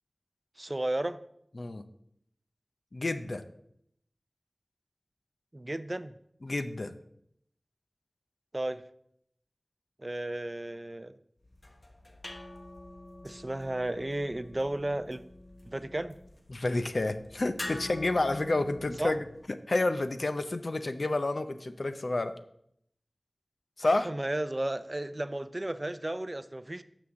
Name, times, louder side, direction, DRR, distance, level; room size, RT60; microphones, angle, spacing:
voice 1, 0.6-1.2 5.5-6.1 8.5-8.8 10.0-11.2 13.2-15.2 15.7-16.2 19.0-19.1 24.0-26.8, right 1 dB, 35° right, 13 dB, 0.5 m, -33 dB
voice 2, 1.6-1.9 2.9-3.4 6.4-6.9 16.5-19.2 19.7-22.3 23.8-24.1, left 2 dB, 75° left, 9 dB, 0.6 m, -29 dB
sound 1, 11.4-19.5, left 1 dB, 55° left, 1.1 m, -46 dB
6.3 x 6.1 x 7.0 m, 0.73 s
wide cardioid pair, 50°, 0 cm